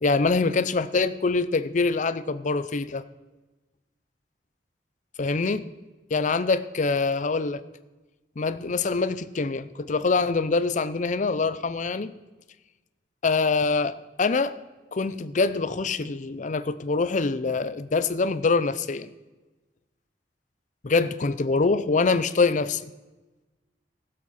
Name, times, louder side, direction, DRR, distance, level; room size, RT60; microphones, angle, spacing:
voice 1, 0.0-3.0 5.2-5.7 6.1-7.6 8.4-12.1 13.2-14.6 14.9-19.1 20.8-22.9, left 4 dB, 45° left, 0.5 m, -24 dB
17.0 x 7.6 x 4.2 m
head